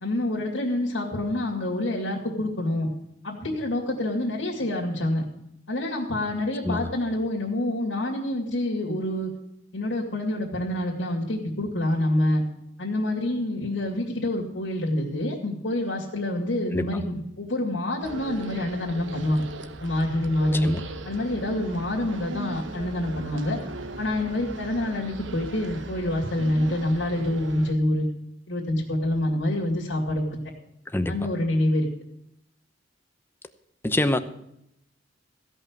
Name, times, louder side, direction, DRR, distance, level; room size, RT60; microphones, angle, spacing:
voice 1, 0.0-2.9 3.2-5.2 5.7-9.3 9.7-12.4 12.8-19.4 19.8-20.7 21.0-23.6 24.0-28.1 28.5-30.4 31.1-31.9, left 1 dB, 75° left, -3 dB, 2.5 m, -27 dB
voice 2, 16.7-17.0 20.5-20.8 30.9-31.2 33.8-34.2, left 1 dB, 10° left, 10 dB, 0.8 m, -25 dB
sound 1, 18.0-27.7, right 2 dB, 80° right, 0.9 m, -39 dB
16.0 x 5.6 x 9.0 m, 0.77 s
head